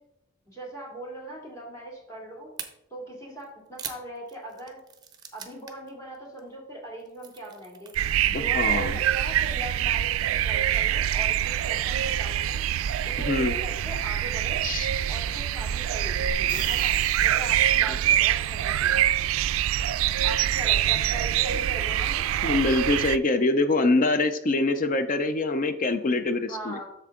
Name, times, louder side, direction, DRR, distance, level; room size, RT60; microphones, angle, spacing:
voice 1, 0.5-2.5 2.9-4.8 5.3-7.9 8.3-12.6 13.0-14.6 15.1-19.0 20.2-22.2 26.5-26.9, right 1 dB, 15° left, -3 dB, 2.4 m, -40 dB
sound 1, 2.6-2.7 3.4-5.9 6.1-6.4 6.9-8.0, right 7 dB, 20° right, 0.8 m, -41 dB
sound 2, 8.0-23.2, right 11 dB, 70° right, 0.3 m, -25 dB
voice 2, 8.3-8.9 13.2-13.5 14.6-14.9 22.4-26.8, left 2 dB, 40° left, 10 dB, 0.5 m, -24 dB
sound 3, 16.3-18.1 22.0-22.1, left 2 dB, 70° left, 2.4 m, -42 dB
7.9 x 6.7 x 3.7 m, 0.82 s
head